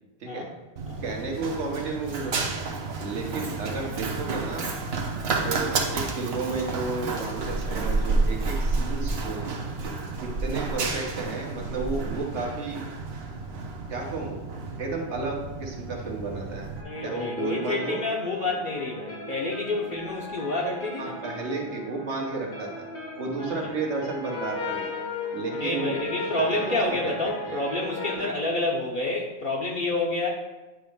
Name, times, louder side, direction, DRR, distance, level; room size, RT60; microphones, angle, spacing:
Run, 0.8-16.8, right 3 dB, 65° right, 1.0 m, -30 dB
voice 1, 1.0-2.7 3.0-4.7 5.4-9.5 10.2-12.8 13.9-14.4 14.8-16.7 17.0-18.0 21.0-22.9 23.2-24.9 25.3-26.0 26.5-27.1 27.5-27.6 28.1-28.3, right 3 dB, 80° right, 0 dB, 1.5 m, -32 dB
sound 1, 16.8-28.2, left 2 dB, 75° left, 1.6 m, -37 dB
voice 2, 16.8-21.1 23.4-23.7 25.5-30.3, left 2 dB, 50° left, -2 dB, 0.9 m, -29 dB
8.7 x 3.1 x 5.1 m, 1.1 s
omnidirectional pair, 1.2 m